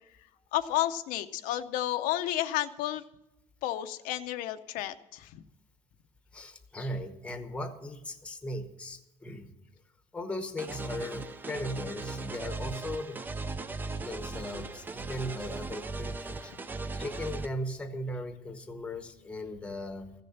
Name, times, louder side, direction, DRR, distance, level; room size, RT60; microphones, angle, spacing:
voice 1, 0.5-3.0 3.6-5.4, left 13 dB, 75° left, 8 dB, 0.7 m, -31 dB
voice 2, 6.3-9.5 10.1-13.2 14.0-16.5 16.9-20.1, left 1 dB, 10° left, 7 dB, 0.9 m, -38 dB
sound 1, 10.6-17.5, right 3 dB, 15° right, 0.4 m, -38 dB
15.0 x 6.7 x 8.6 m, 0.95 s
cardioid pair, 175°, 15 cm